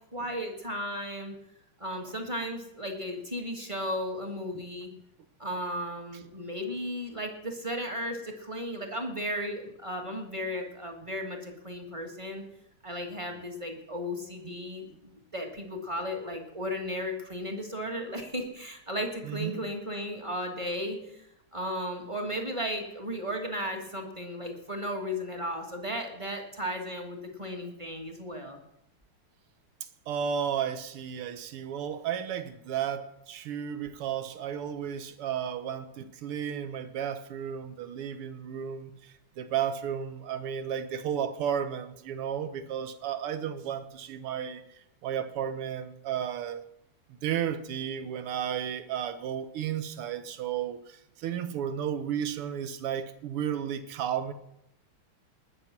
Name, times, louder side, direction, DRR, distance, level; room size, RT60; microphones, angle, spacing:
voice 1, 0.1-1.3 1.8-4.9 5.4-12.4 12.8-21.3 21.5-28.6, equal, 15° right, 1.7 m, -35 dB
voice 2, 19.2-19.6 30.1-46.6 47.2-54.3, right 9 dB, 85° right, 1.9 m, -33 dB
19.5 x 7.0 x 6.0 m
omnidirectional pair, 2.4 m